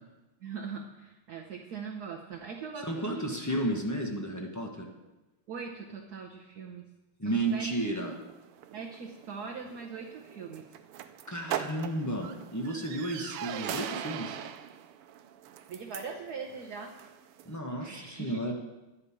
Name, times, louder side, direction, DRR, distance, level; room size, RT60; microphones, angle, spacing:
voice 1, 0.4-3.2 3.5-3.7 5.5-6.9 7.2-7.7 8.7-10.6 15.7-16.9 17.8-18.5, right 5 dB, 55° right, 1 dB, 1.2 m, -41 dB
voice 2, 2.8-4.9 7.2-8.2 11.3-14.4 17.4-18.5, right 1 dB, 10° left, 1 dB, 0.8 m, -32 dB
sound 1, 7.5-17.6, right 10 dB, 85° right, 1.6 m, -42 dB
11.5 x 5.6 x 8.5 m, 1.1 s
omnidirectional pair, 2.4 m